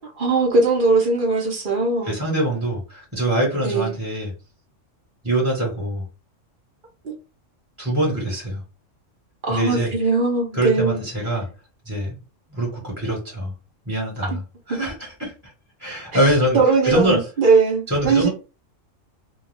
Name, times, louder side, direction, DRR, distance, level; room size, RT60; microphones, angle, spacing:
voice 1, 0.0-2.2 3.6-3.9 7.0-7.1 9.4-11.0 14.3-14.4 16.5-18.3, right 3 dB, 50° right, 0.8 m, -20 dB
voice 2, 2.0-4.3 5.2-6.0 7.8-8.6 9.5-9.9 10.5-11.5 11.8-12.2 12.5-13.5 13.9-14.4 14.7-15.3 15.8-16.6 16.8-17.2 17.9-18.3, right 1 dB, 10° right, 1.1 m, -23 dB
2.3 x 2.3 x 3.3 m
omnidirectional pair, 1.3 m